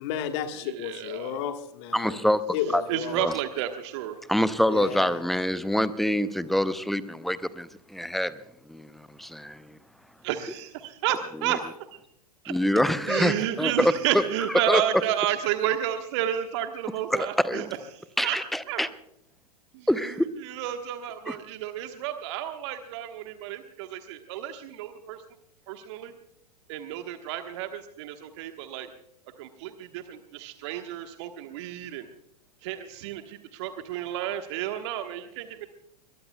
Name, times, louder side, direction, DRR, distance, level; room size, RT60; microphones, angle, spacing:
voice 1, 0.0-2.2 2.5-3.1 4.7-5.2, left 9 dB, 40° left, 8 dB, 1.5 m, -32 dB
voice 2, 0.6-1.4 2.9-4.2 10.2-12.0 12.4-12.5 13.1-17.7 17.9-18.4 18.7-18.8 19.7-25.2 25.7-26.1 26.7-28.9 29.4-32.1 32.6-35.7, right 11 dB, 45° right, 7 dB, 1.3 m, -31 dB
voice 3, 1.9-2.4 2.7-2.8 3.1-3.3 4.3-8.4 8.7-9.8 11.5-11.6 12.5-14.2 14.7-14.8 17.1-17.7 18.2-18.9 19.9-20.3 21.3-21.4, equal, ahead, 15 dB, 0.6 m, -25 dB
22.0 x 22.0 x 2.3 m, 0.72 s
figure-of-eight pair, 100°, 21 cm